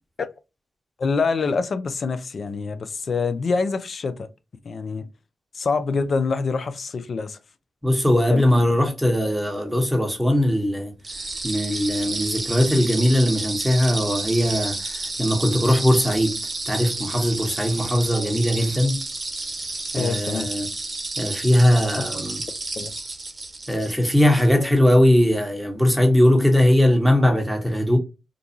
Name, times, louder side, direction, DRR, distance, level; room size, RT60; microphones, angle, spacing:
voice 1, 1.0-4.3 4.6-5.1 5.5-7.4 8.3-8.4 20.0-20.5 22.0-22.1 22.8-22.9, left 4 dB, 60° left, 0.4 m, -25 dB
voice 2, 7.8-10.9 11.4-16.4 16.7-19.0 19.9-20.7 21.2-22.4 23.7-28.0, left 1 dB, ahead, 1.0 m, -20 dB
sound 1, 11.0-24.5, right 2 dB, 35° right, 0.9 m, -31 dB
2.5 x 2.3 x 2.8 m
supercardioid pair, 45°, 0 cm